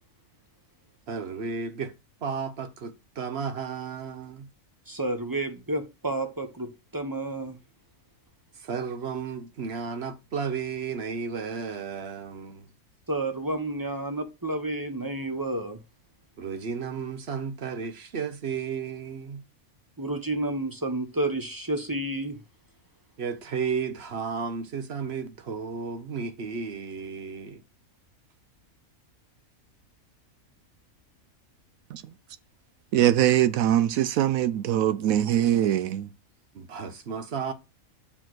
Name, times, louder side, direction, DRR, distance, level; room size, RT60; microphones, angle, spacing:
voice 1, 1.1-1.9 2.2-4.5 8.5-12.7 16.4-19.4 23.2-27.6 36.5-37.5, right 5 dB, 55° right, 1.0 m, -33 dB
voice 2, 4.9-7.6 13.1-15.8 20.0-22.4, right 2 dB, 15° right, 1.0 m, -30 dB
voice 3, 32.9-36.1, right 11 dB, 80° right, 1.0 m, -22 dB
6.1 x 4.6 x 6.2 m
omnidirectional pair, 1.4 m